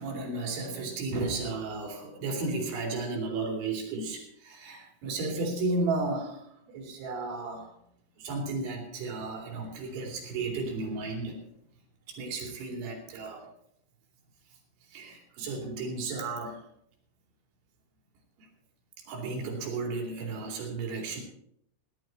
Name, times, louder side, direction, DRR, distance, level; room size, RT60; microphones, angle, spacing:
voice 1, 0.0-7.7 8.2-11.4 12.1-13.5 14.9-16.6 18.4-18.5 19.1-21.2, right 3 dB, 65° right, 1 dB, 5.0 m, -34 dB
17.0 x 12.0 x 4.4 m, 0.73 s
omnidirectional pair, 5.8 m